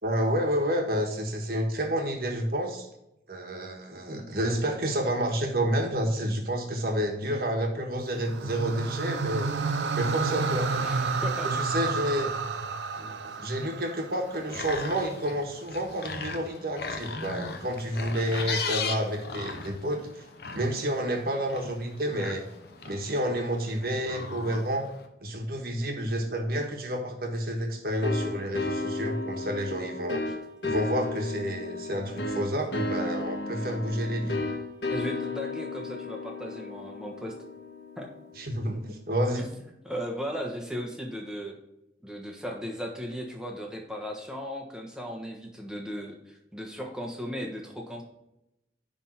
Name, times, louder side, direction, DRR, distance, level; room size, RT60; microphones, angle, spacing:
voice 1, 0.0-2.9 3.3-10.7 11.4-12.3 13.0-20.2 20.5-22.5 22.8-24.9 25.2-30.2 30.6-34.4 38.4-39.5, equal, 55° right, 3 dB, 1.4 m, -29 dB
sound 1, 8.1-14.4, right 4 dB, 85° right, 0.6 m, -30 dB
voice 2, 10.8-11.5 34.9-37.3 38.0-38.1 39.8-41.5 42.0-48.0, equal, 5° right, 0 dB, 1.2 m, -36 dB
sound 2, 14.2-25.1, left 4 dB, 65° left, 0.8 m, -38 dB
sound 3, 28.0-38.5, left 2 dB, 85° left, 1.2 m, -34 dB
10.0 x 3.6 x 4.3 m, 0.86 s
head